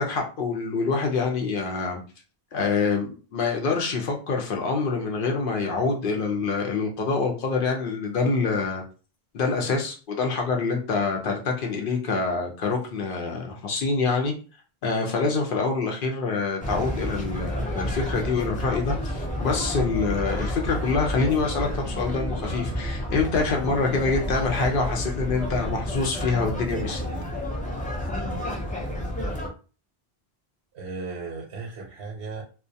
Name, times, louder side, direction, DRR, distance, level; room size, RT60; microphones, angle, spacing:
voice 1, 0.0-2.0 2.5-8.8 9.3-14.3 14.8-27.1, left 4 dB, 60° left, 2 dB, 0.7 m, -26 dB
sound 1, 16.6-29.5, equal, 15° left, 0.3 m, -30 dB
voice 2, 30.7-32.4, right 3 dB, 80° right, -1 dB, 0.9 m, -36 dB
2.2 x 2.1 x 2.6 m, 0.36 s
omnidirectional pair, 1.1 m